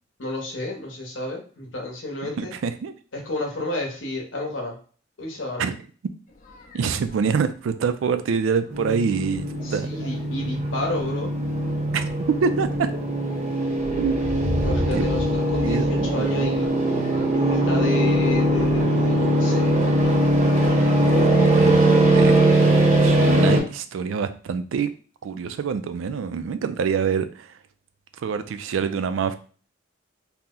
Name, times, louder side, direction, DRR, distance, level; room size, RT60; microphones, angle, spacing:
voice 1, 0.2-2.5 3.2-4.7 5.2-5.7 9.6-11.3 14.6-16.7 17.3-19.7, left 1 dB, 70° left, 0 dB, 0.8 m, -31 dB
voice 2, 2.4-2.9 5.6-5.8 6.7-9.9 11.9-12.9 14.0-14.2 14.7-15.1 15.6-16.5 21.0-22.6 23.0-24.9 25.2-27.6 28.2-29.3, right 6 dB, 75° right, 10 dB, 0.3 m, -26 dB
sound 1, 6.3-7.3 8.1-8.2 8.7-8.9 9.2-9.8 10.5-10.7 11.2-21.8, left 1 dB, 40° left, 0.5 m, -36 dB
sound 2, 8.7-23.6, right 1 dB, 35° right, 0.6 m, -21 dB
2.8 x 2.0 x 3.6 m, 0.40 s
head